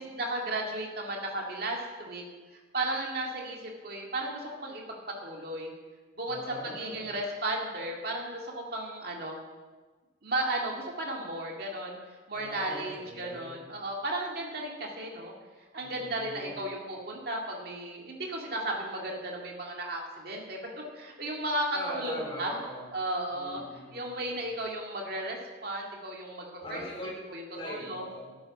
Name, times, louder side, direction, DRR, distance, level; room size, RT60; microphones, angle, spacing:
voice 1, 0.0-2.2 2.7-5.7 6.2-9.4 10.2-15.3 15.7-22.6 22.9-23.6 23.9-26.8 27.3-28.0, right 1 dB, 50° right, 0 dB, 2.2 m, -34 dB
voice 2, 6.3-7.1 12.3-13.7 15.8-16.6 21.7-22.9 23.3-24.6 26.6-27.1 27.5-28.3, left 1 dB, 30° left, -3 dB, 3.9 m, -42 dB
12.5 x 9.7 x 6.0 m, 1.3 s
head